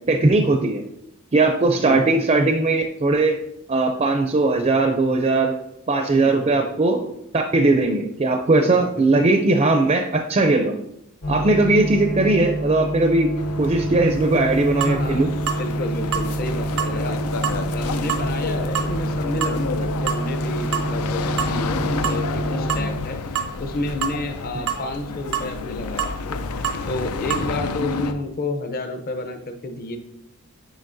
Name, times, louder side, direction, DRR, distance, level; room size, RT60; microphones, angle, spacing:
voice 1, 0.1-0.8 1.3-3.4 3.7-5.5 5.9-7.1 7.3-10.8 11.3-13.3 13.6-15.3, right 2 dB, 30° right, 4 dB, 0.4 m, -19 dB
voice 2, 6.1-6.5 8.6-9.3 11.4-11.8 14.8-15.3 15.5-17.2 17.7-30.0, left 2 dB, 45° left, 7 dB, 0.7 m, -31 dB
sound 1, 11.2-23.0, right 1 dB, 65° left, 1.2 m, -27 dB
sound 2, 13.4-28.1, left 4 dB, 90° left, 0.5 m, -30 dB
sound 3, 14.3-14.4 14.8-15.0 15.5-15.6 16.1-16.3 16.8-17.0 17.4-17.6 18.1-18.3 18.7-18.9 19.4-19.6 20.1-20.3 20.7-20.9 21.4-21.6 22.0-22.2 22.7-22.9 23.4-23.5 24.0-24.2 24.7-24.8 25.3-25.5 26.0-26.2 26.6-26.8 27.3-27.5, right 8 dB, 85° right, 0.7 m, -26 dB
8.9 x 5.0 x 2.6 m, 0.82 s
head